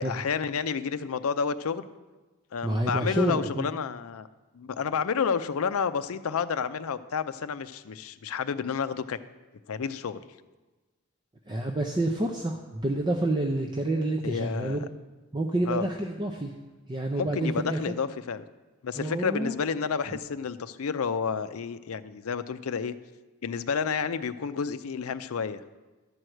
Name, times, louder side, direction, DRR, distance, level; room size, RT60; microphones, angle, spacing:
voice 1, 0.0-1.9 2.5-4.3 4.5-9.2 9.7-10.2 14.2-14.8 15.7-15.9 17.1-18.4 18.8-22.9 23.4-25.6, left 6 dB, 75° left, 13 dB, 0.5 m, -30 dB
voice 2, 2.6-3.7 11.5-14.8 15.3-16.6 16.9-17.9 19.0-19.5 20.1-20.2, right 1 dB, 20° right, 2 dB, 0.5 m, -28 dB
12.0 x 4.7 x 7.7 m, 1.2 s
head